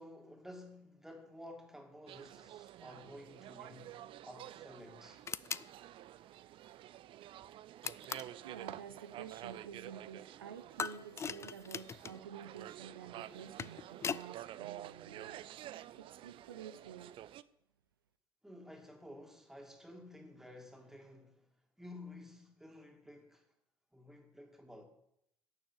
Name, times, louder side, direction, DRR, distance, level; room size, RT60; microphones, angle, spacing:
voice 1, 0.0-5.3 18.4-21.5 21.8-23.4 23.9-24.8, left 1 dB, 5° right, 2.4 m, -53 dB
sound 1, 2.1-17.4, right 13 dB, 50° right, 0.5 m, -50 dB
sound 2, 5.3-5.7 7.8-8.4 10.8-12.2 13.3-14.3, left 6 dB, 25° left, 0.4 m, -40 dB
voice 2, 8.4-15.4 15.9-17.1, right 8 dB, 85° right, 0.7 m, -50 dB
11.5 x 7.2 x 6.4 m
figure-of-eight pair, 60°, 11 cm